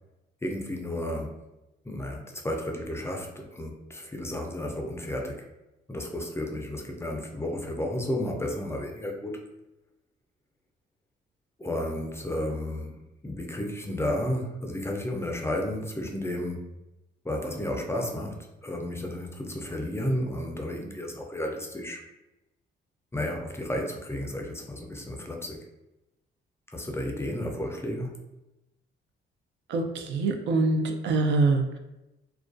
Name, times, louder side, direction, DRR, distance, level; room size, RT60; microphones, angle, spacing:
voice 1, 0.4-1.4 1.8-5.5 5.9-9.4 11.6-16.7 17.2-22.0 23.1-25.7 26.7-28.2, left 1 dB, 15° left, 1 dB, 0.4 m, -32 dB
voice 2, 29.7-31.8, right 3 dB, 65° right, 5 dB, 0.4 m, -25 dB
2.3 x 2.2 x 2.4 m, 0.96 s
cardioid pair, 90°, 20 cm